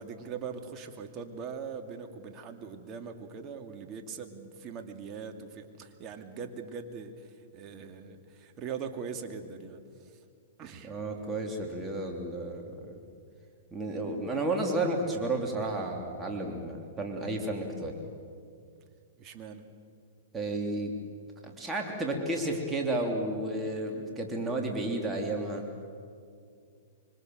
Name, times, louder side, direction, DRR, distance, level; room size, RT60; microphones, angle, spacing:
voice 1, 0.0-10.2 10.6-11.0 19.2-19.7, right 6 dB, 30° right, 5 dB, 2.6 m, -41 dB
voice 2, 10.8-13.0 13.7-18.0 20.3-20.9 21.4-25.7, right 2 dB, 15° right, 1 dB, 3.2 m, -32 dB
25.5 x 25.0 x 7.9 m, 2.3 s
hypercardioid pair, 125°, 0 cm